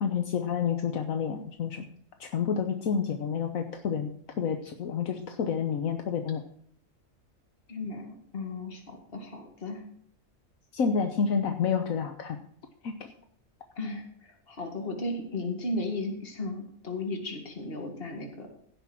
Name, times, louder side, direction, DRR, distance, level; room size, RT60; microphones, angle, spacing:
voice 1, 0.0-1.9 2.2-4.1 4.4-6.4 10.7-12.4 12.8-12.9, left 6 dB, 80° left, 5 dB, 1.4 m, -29 dB
voice 2, 7.7-9.8 13.8-18.5, left 2 dB, 45° left, 3 dB, 2.2 m, -35 dB
16.0 x 6.0 x 6.0 m, 0.64 s
omnidirectional pair, 1.4 m